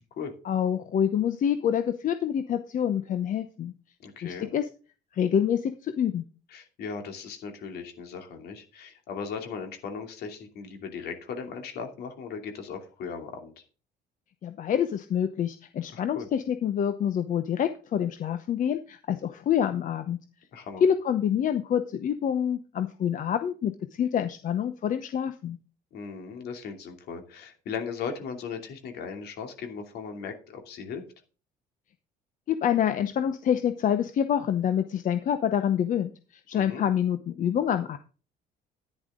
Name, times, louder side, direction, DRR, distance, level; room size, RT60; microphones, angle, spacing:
voice 1, 0.4-3.7 4.2-4.7 5.1-6.2 14.4-20.2 20.8-25.6 32.5-38.0, left 9 dB, 50° left, 10 dB, 0.8 m, -27 dB
voice 2, 4.0-4.5 6.5-13.6 15.9-16.3 20.5-20.8 25.9-31.0 36.5-36.8, left 6 dB, 70° left, 4 dB, 2.7 m, -38 dB
11.0 x 10.5 x 3.7 m, 0.36 s
cardioid pair, 110°, 17 cm